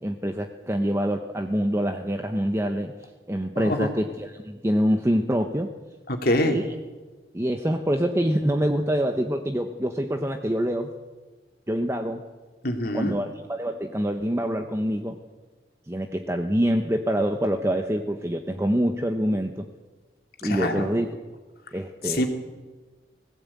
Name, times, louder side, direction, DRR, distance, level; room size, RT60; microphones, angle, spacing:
voice 1, 0.0-2.9 3.3-5.7 6.5-6.7 7.3-10.9 11.7-12.2 12.9-15.2 15.9-19.7 20.4-21.1 21.7-22.2, equal, 15° right, 5 dB, 1.0 m, -25 dB
voice 2, 3.5-3.9 6.1-6.6 12.6-13.2 20.4-20.9 22.0-22.3, left 1 dB, 55° left, 3 dB, 2.8 m, -25 dB
20.5 x 16.0 x 8.5 m, 1.3 s
head